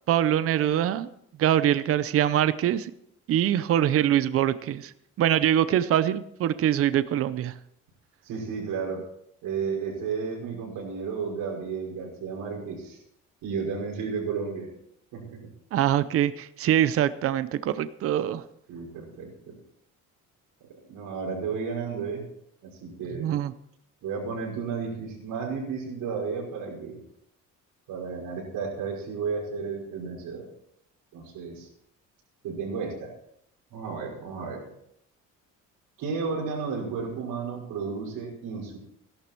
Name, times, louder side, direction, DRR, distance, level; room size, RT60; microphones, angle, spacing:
voice 1, 0.1-1.1 1.4-2.9 3.3-4.9 5.2-7.5 15.7-18.4 23.2-23.5, right 11 dB, 45° right, 14 dB, 0.6 m, -23 dB
voice 2, 8.2-9.0 9.4-13.0 13.4-14.7 15.1-15.4 18.7-19.5 20.9-22.2 22.6-23.3 24.0-27.0 27.9-30.5 31.1-31.7 32.4-33.1 33.7-34.7 36.0-38.8, right 5 dB, 90° right, -1 dB, 5.6 m, -33 dB
17.0 x 11.5 x 4.5 m, 0.73 s
cardioid pair, 175°, 32 cm